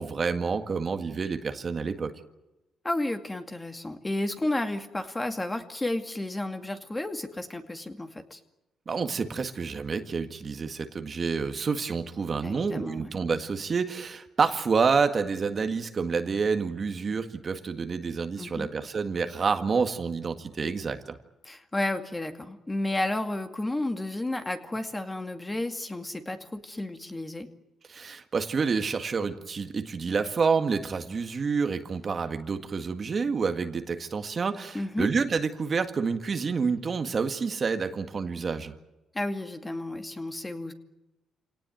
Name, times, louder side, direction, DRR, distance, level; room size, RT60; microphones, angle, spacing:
voice 1, 0.0-2.1 8.9-21.2 27.9-38.7, right 5 dB, 40° right, 7 dB, 1.8 m, -28 dB
voice 2, 2.8-8.4 12.4-13.1 18.4-18.7 21.4-27.5 34.7-35.1 39.1-40.7, left 1 dB, 15° left, 7 dB, 2.3 m, -32 dB
26.0 x 18.5 x 9.3 m, 0.99 s
cardioid pair, 90°, 0 cm